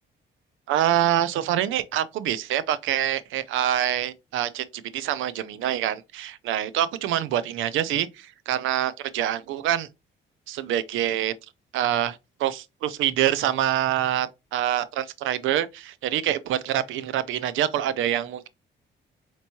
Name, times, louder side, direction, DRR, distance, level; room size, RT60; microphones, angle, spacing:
voice 1, 0.7-4.7 4.9-9.9 10.7-11.3 11.7-18.5, right 11 dB, 80° right, 0.4 m, -25 dB
4.3 x 3.0 x 2.7 m
cardioid pair, 90°, 20 cm